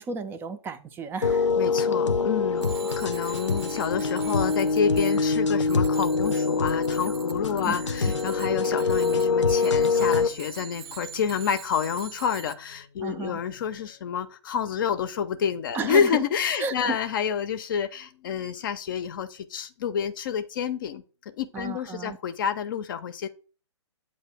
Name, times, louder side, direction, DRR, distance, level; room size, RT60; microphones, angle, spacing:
voice 1, 0.0-1.5 7.7-7.8 8.1-8.2 13.0-13.4 15.7-16.1 16.6-17.0 21.5-22.2, right 4 dB, 15° right, 0.5 m, -33 dB
sound 1, 1.2-10.3, left 4 dB, 85° left, 0.7 m, -24 dB
voice 2, 1.6-23.3, left 7 dB, 45° left, 0.7 m, -29 dB
Bicycle bell, 2.6-12.5, right 9 dB, 55° right, 0.6 m, -43 dB
8.1 x 2.9 x 5.8 m
figure-of-eight pair, 125°, 15 cm